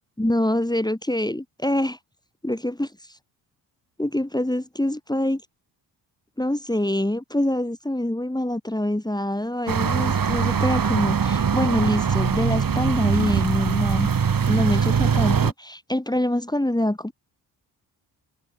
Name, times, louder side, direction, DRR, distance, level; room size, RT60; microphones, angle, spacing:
voice 1, 0.2-2.0 2.4-2.9 4.0-5.4 6.4-14.1 14.5-17.1, left 1 dB, 10° left, 2.9 m, -25 dB
sound 1, 9.7-15.5, right 6 dB, 45° right, 2.1 m, -22 dB
supercardioid pair, 45°, 49 cm